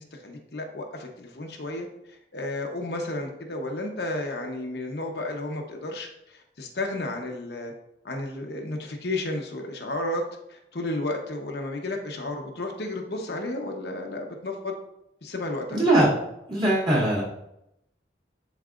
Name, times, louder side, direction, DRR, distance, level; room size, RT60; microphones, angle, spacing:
voice 1, 0.0-1.9 2.3-7.7 8.0-10.2 10.5-14.7 15.2-15.8, left 2 dB, 65° left, 2 dB, 0.9 m, -32 dB
voice 2, 15.7-16.1 16.5-17.2, right 1 dB, 25° right, -7 dB, 2.4 m, -20 dB
11.0 x 4.0 x 2.5 m, 0.82 s
head